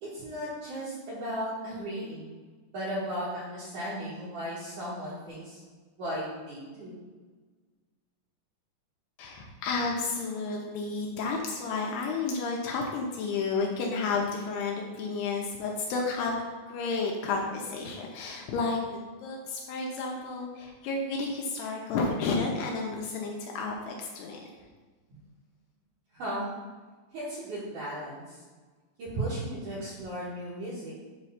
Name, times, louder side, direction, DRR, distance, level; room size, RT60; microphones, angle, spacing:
voice 1, 0.0-2.4 2.7-5.6 6.0-7.0 26.1-26.5 27.1-28.4 29.0-31.0, right 1 dB, 60° right, -9 dB, 2.4 m, -36 dB
voice 2, 9.2-24.5, left 4 dB, 80° left, 0 dB, 2.7 m, -31 dB
7.6 x 3.1 x 5.6 m, 1.4 s
omnidirectional pair, 4.9 m